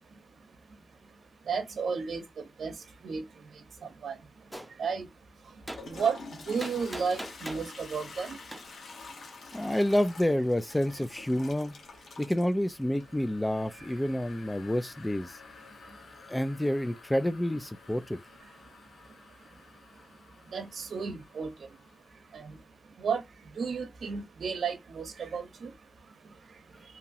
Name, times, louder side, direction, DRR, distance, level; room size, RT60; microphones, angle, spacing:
voice 1, 1.5-2.2 2.6-2.7 3.0-3.2 4.0-4.2 4.8-5.1 5.8-6.2 6.5-8.4 20.5-21.5 22.3-22.5 23.0-23.2 23.6-25.7, right 5 dB, 85° right, 0.7 m, -32 dB
Gunshot gunfire, 4.5-4.7 5.7-5.8 6.6-7.7 8.5-8.6, equal, 5° right, 0.8 m, -39 dB
Toilet flush, 5.6-22.4, left 4 dB, 85° left, 1.0 m, -49 dB
voice 2, 9.5-11.7 12.2-15.4 16.3-18.2, left 1 dB, 10° left, 0.4 m, -28 dB
2.8 x 2.8 x 2.5 m
cardioid pair, 70°, 0 cm